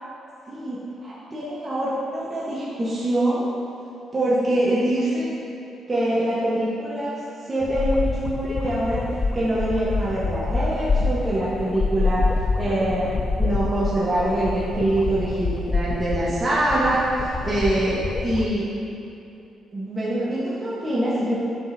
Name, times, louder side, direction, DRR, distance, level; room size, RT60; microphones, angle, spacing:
voice 1, 0.5-3.5 4.1-5.4 5.9-12.2 12.6-18.7 19.7-21.4, right 1 dB, 25° right, -9 dB, 1.2 m, -24 dB
sound 1, 7.6-18.4, left 3 dB, 35° left, 0.4 m, -26 dB
7.5 x 6.1 x 2.7 m, 2.8 s
cardioid pair, 90°, 0 cm